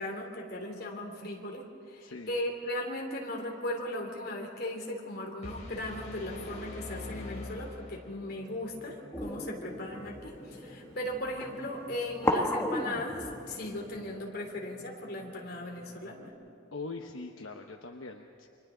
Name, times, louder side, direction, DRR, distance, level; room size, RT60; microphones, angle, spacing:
voice 1, 0.0-16.3, left 1 dB, 50° left, 0 dB, 3.2 m, -37 dB
voice 2, 2.0-2.4 16.7-18.5, left 3 dB, 75° left, 3 dB, 1.0 m, -42 dB
sound 1, 5.4-8.4, left 2 dB, 35° left, 3.8 m, -43 dB
sound 2, 8.2-16.3, left 1 dB, 10° right, 5.2 m, -52 dB
sound 3, 9.1-14.1, left 1 dB, 10° left, 1.2 m, -35 dB
30.0 x 24.5 x 3.9 m, 2.6 s
head